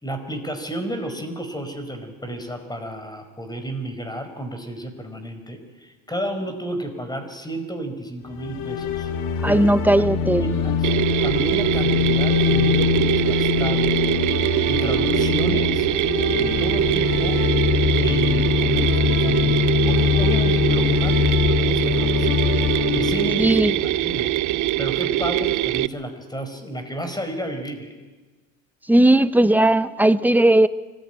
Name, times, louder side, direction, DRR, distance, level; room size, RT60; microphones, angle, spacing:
voice 1, 0.0-9.1 9.4-9.7 10.0-10.1 10.4-10.9 11.2-14.0 14.7-15.9 16.4-17.5 17.9-22.5 22.9-24.3 24.8-27.9, right 1 dB, 10° left, 8 dB, 4.9 m, -31 dB
sound 1, 8.3-24.4, left 8 dB, 85° left, 2.2 m, -23 dB
voice 2, 9.4-10.5 23.4-23.7 28.9-30.7, right 1 dB, 5° right, 13 dB, 0.9 m, -17 dB
Mechanisms, 10.8-25.9, right 15 dB, 55° right, 0.6 m, -23 dB
24.5 x 15.5 x 9.1 m, 1.2 s
supercardioid pair, 80°, 37 cm